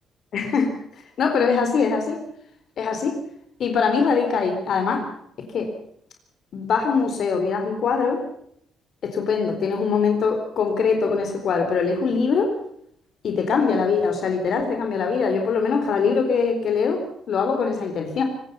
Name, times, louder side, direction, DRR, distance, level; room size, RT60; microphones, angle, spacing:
voice 1, 0.3-0.7 1.2-2.2 2.8-3.2 3.6-5.1 5.5-5.7 6.5-8.2 9.0-12.5 13.2-18.2, left 5 dB, 55° left, 5 dB, 4.2 m, -22 dB
25.0 x 20.0 x 5.7 m, 0.67 s
cardioid pair, 150°, 0 cm